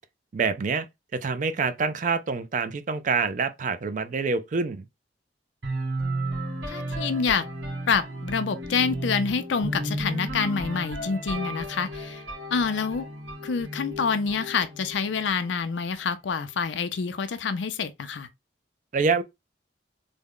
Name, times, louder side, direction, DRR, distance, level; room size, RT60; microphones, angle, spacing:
voice 1, 0.3-0.9 1.1-4.9 18.9-19.2, right 4 dB, 45° right, 0.4 m, -26 dB
sound 1, 5.6-15.4, right 1 dB, 70° right, 1.3 m, -33 dB
voice 2, 6.7-7.5 7.9-12.2 12.5-13.0 13.4-18.3, left 5 dB, 85° left, 0.5 m, -27 dB
3.5 x 2.1 x 3.6 m
head